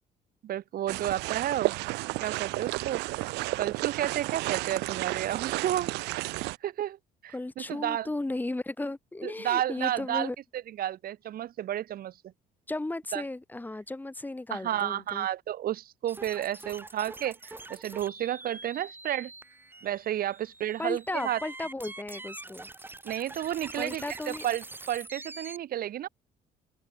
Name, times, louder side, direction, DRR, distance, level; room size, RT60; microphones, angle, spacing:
voice 1, 0.4-1.7 2.2-3.2 3.6-6.2 6.6-7.0 7.2-8.1 9.2-12.2 13.1-13.2 14.5-19.3 19.8-21.4 23.0-26.1, right 12 dB, 60° right, 3.0 m, -32 dB
sound 1, 0.9-6.6, right 22 dB, 85° right, 0.5 m, -32 dB
voice 2, 7.3-10.4 12.7-15.3 20.8-22.7 23.8-24.5, left 2 dB, 10° left, 3.6 m, -35 dB
sound 2, 16.1-25.6, right 2 dB, 10° right, 2.8 m, -45 dB
open air
cardioid pair, 110°, 17 cm